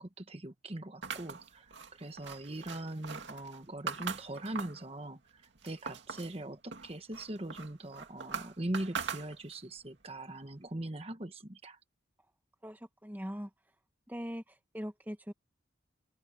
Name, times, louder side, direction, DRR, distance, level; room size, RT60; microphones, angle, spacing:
voice 1, 0.0-11.8, right 1 dB, 30° right, 1.3 m, -41 dB
sound 1, 1.0-4.9 5.3-6.4 6.7-9.7, right 5 dB, 75° right, 2.2 m, -42 dB
voice 2, 12.6-13.5 14.1-15.3, equal, 10° right, 1.4 m, -41 dB
open air
head